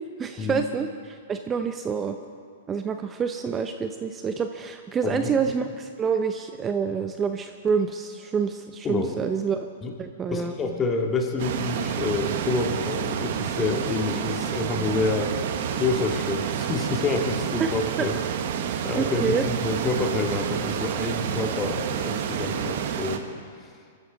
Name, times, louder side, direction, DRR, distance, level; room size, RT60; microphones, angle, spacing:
voice 1, 0.0-2.2 2.7-9.7 10.0-10.5 17.6-17.7 18.0-18.1 19.0-19.4, right 6 dB, 20° right, 7 dB, 0.7 m, -27 dB
voice 2, 5.0-5.5 8.8-9.1 9.8-9.9 10.3-15.3 15.7-18.2 18.5-23.2, left 4 dB, 20° left, 2 dB, 2.2 m, -28 dB
sound 1, 11.4-23.2, right 8 dB, 55° right, 1.2 m, -29 dB
23.5 x 13.5 x 4.1 m, 2.1 s
hypercardioid pair, 110°, 0 cm